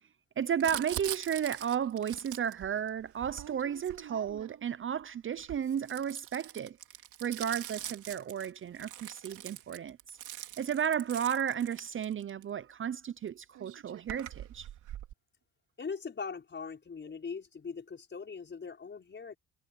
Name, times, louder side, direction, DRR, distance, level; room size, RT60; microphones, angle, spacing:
voice 1, 0.4-6.8 7.2-10.0 10.6-14.7, right 8 dB, 45° right, 0.7 m, -33 dB
Crumpling crinkling, 0.6-4.6 5.3-12.4 13.3-13.4 13.5-15.1, right 12 dB, 80° right, 4.3 m, -44 dB
voice 2, 15.8-19.4, left 5 dB, 40° left, 5.9 m, -41 dB
cardioid pair, 90°, 30 cm